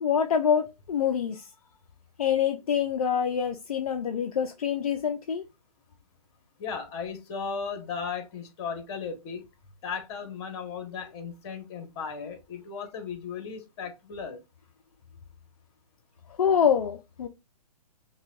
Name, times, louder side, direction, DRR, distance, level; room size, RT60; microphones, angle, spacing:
voice 1, 0.0-1.4 2.2-5.5 16.4-17.3, left 8 dB, 65° left, 0.5 m, -26 dB
voice 2, 6.6-9.4 9.8-14.4, left 6 dB, 45° left, 1.2 m, -36 dB
5.5 x 2.4 x 2.4 m
figure-of-eight pair, 125°, 20 cm